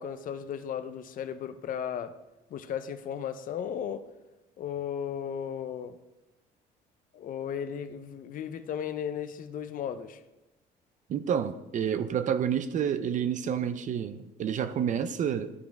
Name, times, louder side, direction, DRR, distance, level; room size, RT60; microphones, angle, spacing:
voice 1, 0.0-2.1 2.5-4.1 4.6-6.0 7.1-10.2, left 8 dB, 55° left, 0.6 m, -35 dB
voice 2, 11.1-15.5, right 8 dB, 45° right, 0.5 m, -29 dB
11.0 x 5.1 x 3.5 m
cardioid pair, 110°, 17 cm